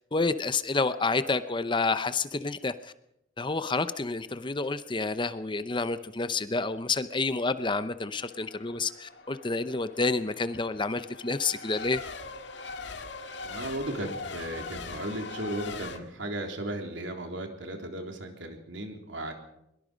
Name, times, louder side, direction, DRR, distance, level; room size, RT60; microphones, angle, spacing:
voice 1, 0.1-2.9 3.4-12.0, left 3 dB, 25° left, 12 dB, 0.7 m, -29 dB
Race car auto racing / Accelerating revving vroom / Mechanisms, 8.1-16.0, left 4 dB, 60° left, 2.0 m, -41 dB
voice 2, 13.4-19.3, right 1 dB, 70° right, 4 dB, 3.8 m, -36 dB
22.5 x 22.0 x 5.2 m, 0.81 s
head